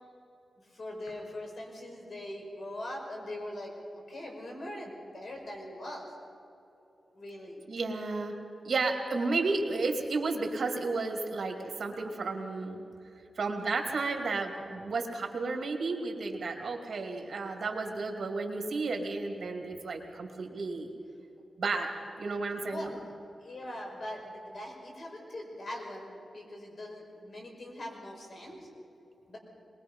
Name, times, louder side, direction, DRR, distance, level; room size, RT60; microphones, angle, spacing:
voice 1, 0.7-3.7 4.1-6.0 7.1-7.6 22.7-22.9 23.4-28.6 29.3-29.4, left 1 dB, 55° left, 0 dB, 5.1 m, -41 dB
voice 2, 7.7-8.4 8.6-12.9 13.4-20.9 21.6-22.9, right 3 dB, 65° right, 3 dB, 2.6 m, -32 dB
22.5 x 20.5 x 5.6 m, 2.9 s
wide cardioid pair, 95°, 0 cm